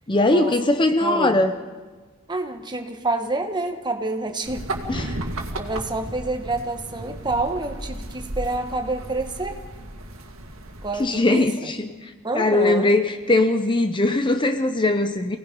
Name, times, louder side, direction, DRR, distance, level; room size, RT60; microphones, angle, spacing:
voice 1, 0.1-1.6 4.9-5.2 11.0-11.9 12.3-15.4, left 2 dB, 25° left, 8 dB, 0.7 m, -20 dB
voice 2, 1.0-1.4 2.3-4.6 4.9-5.2 5.6-9.6 10.8-11.7 12.2-12.9, right 2 dB, 20° right, 5 dB, 1.4 m, -28 dB
sound 1, 4.4-11.1, right 1 dB, 90° right, 2.2 m, -34 dB
28.0 x 18.0 x 5.4 m, 1.3 s
head